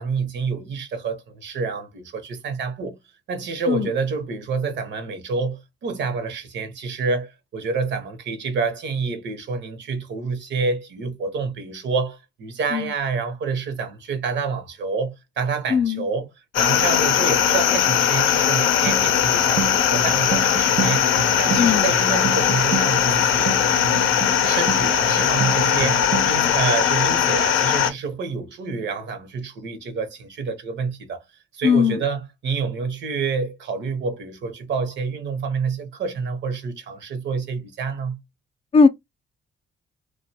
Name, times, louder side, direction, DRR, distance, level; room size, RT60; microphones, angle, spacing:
voice 1, 0.0-3.0 3.3-16.3 16.6-21.1 21.3-23.6 24.4-31.2 31.5-38.2, right 5 dB, 65° right, 0.8 m, -28 dB
voice 2, 15.7-16.0 21.6-21.9 31.6-32.0 38.7-38.9, left 5 dB, 30° left, 0.4 m, -18 dB
sound 1, 16.5-27.9, left 9 dB, 85° left, 0.5 m, -20 dB
sound 2, 18.9-26.6, right 8 dB, 45° right, 0.4 m, -30 dB
2.5 x 2.2 x 2.6 m
cardioid pair, 90°, 20 cm